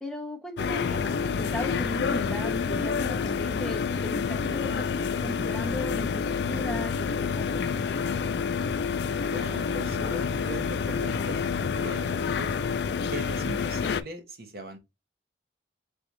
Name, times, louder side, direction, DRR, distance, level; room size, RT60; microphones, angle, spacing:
voice 1, 0.0-7.7, left 1 dB, 5° left, 0.7 m, -37 dB
sound 1, 0.6-14.0, left 6 dB, 65° left, 0.3 m, -28 dB
voice 2, 9.1-12.7 13.1-14.8, right 1 dB, 55° right, 0.9 m, -40 dB
4.0 x 3.5 x 3.0 m
head